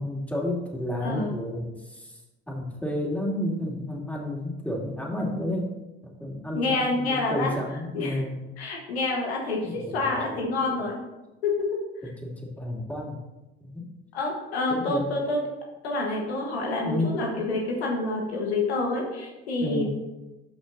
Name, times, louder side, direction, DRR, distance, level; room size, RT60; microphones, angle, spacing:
voice 1, 0.0-1.7 2.5-5.7 6.0-8.4 9.9-10.0 10.3-10.4 12.2-13.2 13.6-13.9 14.7-15.1 16.8-17.1 19.6-19.9, left 1 dB, 5° left, -2 dB, 2.6 m, -31 dB
voice 2, 1.0-1.3 6.5-8.2 8.6-11.0 11.4-11.8 14.1-15.4 15.8-19.9, left 2 dB, 90° left, -1 dB, 1.4 m, -28 dB
13.5 x 5.7 x 2.7 m, 1.1 s
hypercardioid pair, 60°, 31 cm